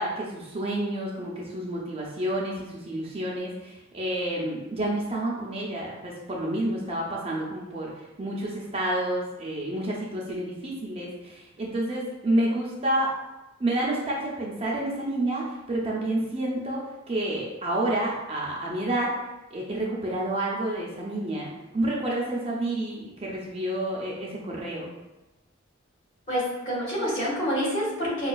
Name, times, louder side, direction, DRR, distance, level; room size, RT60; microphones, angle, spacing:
voice 1, 0.0-7.9 8.2-13.2 13.6-19.1 19.5-24.9, right 1 dB, 30° right, -3 dB, 0.5 m, -29 dB
voice 2, 26.3-28.3, equal, 35° left, -7 dB, 1.4 m, -27 dB
5.1 x 2.3 x 2.3 m, 1.0 s
head